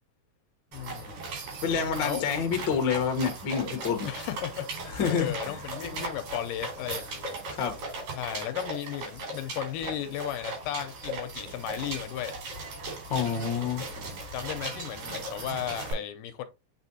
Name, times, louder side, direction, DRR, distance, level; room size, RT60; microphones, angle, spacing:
voice 1, 0.7-1.3 2.0-2.3 4.0-7.2 8.1-12.3 14.3-16.4, left 11 dB, 80° left, 2.2 m, -35 dB
sound 1, 0.7-15.9, right 3 dB, 75° right, 6.0 m, -38 dB
voice 2, 1.6-4.1 5.0-5.3 7.6-7.7 13.1-13.8, left 6 dB, 60° left, 1.2 m, -27 dB
8.2 x 4.6 x 2.7 m
omnidirectional pair, 3.9 m